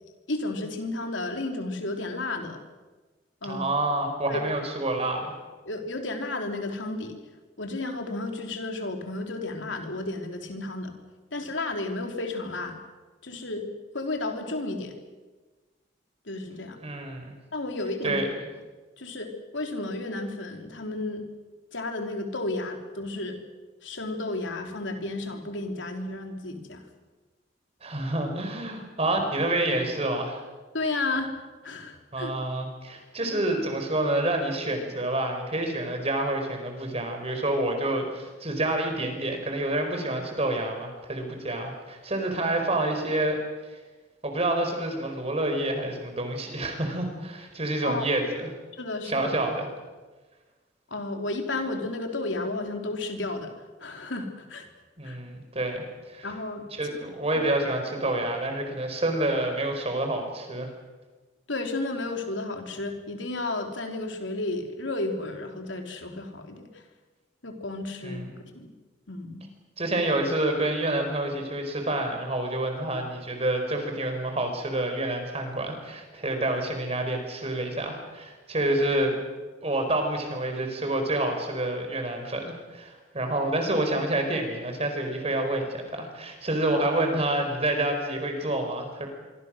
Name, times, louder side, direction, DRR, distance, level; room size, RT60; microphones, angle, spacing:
voice 1, 0.3-2.6 3.4-3.7 4.3-4.4 5.6-7.2 7.6-10.9 11.3-12.8 13.2-13.7 13.9-14.9 16.2-16.8 17.5-18.2 19.0-21.2 21.7-23.4 23.8-26.8 30.7-31.3 31.6-32.3 47.8-48.1 48.8-49.3 50.9-53.5 53.8-54.7 55.0-55.2 56.2-56.7 61.5-66.8 67.4-68.7 69.1-69.5, left 2 dB, 90° left, 4 dB, 3.4 m, -32 dB
voice 2, 3.4-5.3 16.8-17.3 18.0-18.3 27.8-30.4 32.1-43.4 43.7-43.8 44.2-48.5 49.0-49.7 55.0-56.3 56.7-60.7 68.0-68.3 69.8-79.2 79.6-89.1, right 1 dB, 35° right, 5 dB, 4.7 m, -28 dB
25.5 x 24.5 x 6.4 m, 1.3 s
head